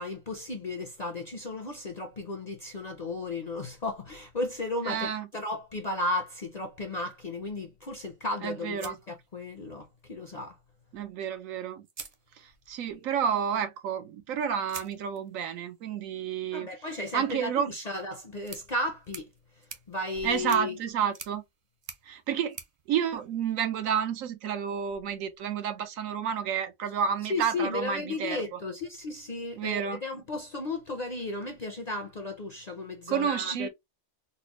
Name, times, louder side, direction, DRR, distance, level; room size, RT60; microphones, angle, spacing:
voice 1, 0.0-10.6 16.5-19.3 19.9-20.8 27.3-33.7, left 2 dB, 50° left, 0.5 m, -34 dB
voice 2, 4.8-5.3 8.4-9.0 10.9-11.8 12.4-16.7 17.1-17.7 20.2-21.4 22.1-22.6 22.9-28.6 29.6-30.0 33.1-33.7, right 8 dB, 85° right, 1.1 m, -30 dB
sound 1, 8.8-9.9 11.2-11.3 11.8-12.9 14.7-23.9, right 5 dB, 50° right, 0.4 m, -49 dB
4.0 x 2.1 x 2.9 m
omnidirectional pair, 1.4 m